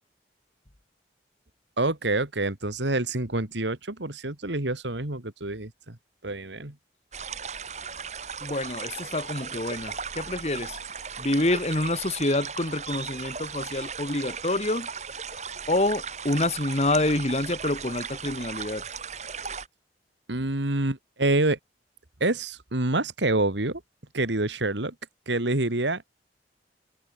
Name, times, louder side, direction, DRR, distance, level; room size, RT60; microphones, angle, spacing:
voice 1, 1.8-6.0 6.2-6.8 20.3-21.6 22.2-23.8 24.1-24.9 25.3-26.0, right 2 dB, 85° right, 2.5 m, -27 dB
sound 1, 7.1-19.7, right 6 dB, 40° right, 5.0 m, -37 dB
voice 2, 8.4-10.8 11.2-14.9 15.7-18.8, left 2 dB, 35° left, 1.9 m, -27 dB
head